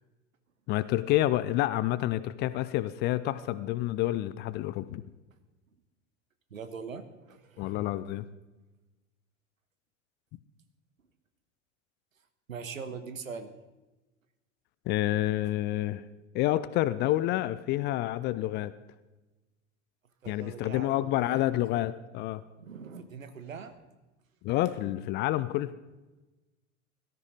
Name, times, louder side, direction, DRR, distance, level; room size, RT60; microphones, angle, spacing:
voice 1, 0.7-5.0 7.6-8.2 14.9-16.0 16.3-18.7 20.3-22.4 24.4-25.7, left 15 dB, 25° left, 16 dB, 0.4 m, -28 dB
voice 2, 6.5-7.8 12.5-13.5 20.2-21.4 22.6-23.7, right 5 dB, 75° right, 10 dB, 1.3 m, -42 dB
17.5 x 13.5 x 4.0 m, 1.1 s
figure-of-eight pair, 80°, 40 cm